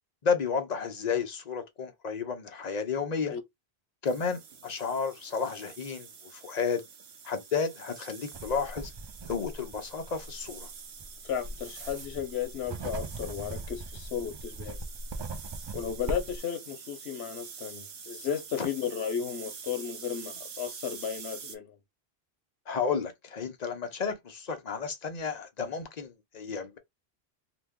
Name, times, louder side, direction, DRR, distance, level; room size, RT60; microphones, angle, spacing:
voice 1, 0.2-3.3 4.0-6.8 7.2-8.9 9.3-10.7 18.6-18.7 22.7-26.8, left 5 dB, 45° left, 0.7 m, -32 dB
sound 1, 4.1-21.6, right 6 dB, 80° right, 1.0 m, -47 dB
sound 2, 8.3-16.4, right 2 dB, 50° right, 0.3 m, -40 dB
voice 2, 11.2-14.8 15.7-21.8, left 8 dB, 85° left, 1.0 m, -34 dB
2.9 x 2.1 x 3.5 m
omnidirectional pair, 1.1 m